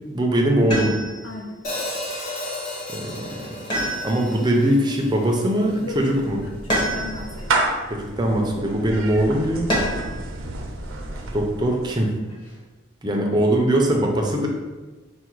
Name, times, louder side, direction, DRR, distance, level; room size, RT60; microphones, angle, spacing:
voice 1, 0.1-1.0 2.9-3.6 4.0-6.4 7.9-9.7 11.3-12.1 13.0-14.5, right 1 dB, 20° right, 1 dB, 0.5 m, -21 dB
sound 1, 0.7-1.3 3.7-4.5 6.7-7.4 9.7-10.2 11.9-12.5, equal, 25° left, 1.1 m, -26 dB
voice 2, 1.2-1.6 5.8-7.7, left 2 dB, 75° left, -1 dB, 0.9 m, -36 dB
Hi-hat, 1.6-5.8, left 1 dB, 40° left, 0.7 m, -34 dB
Clapping / Meow, 5.6-12.0, right 2 dB, 85° right, 0.6 m, -30 dB
4.7 x 2.2 x 4.5 m, 1.2 s
head